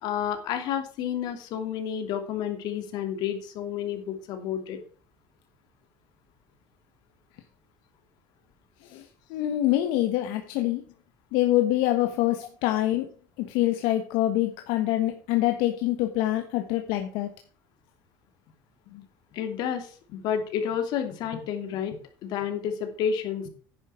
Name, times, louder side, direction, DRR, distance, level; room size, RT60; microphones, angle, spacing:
voice 1, 0.0-4.8 19.3-22.0 22.2-23.5, left 8 dB, 60° left, 6 dB, 2.7 m, -30 dB
voice 2, 9.3-10.8 11.3-13.1 13.4-17.3, left 14 dB, 80° left, 5 dB, 1.4 m, -25 dB
10.0 x 10.0 x 4.5 m, 0.41 s
cardioid pair, 150°, 8 cm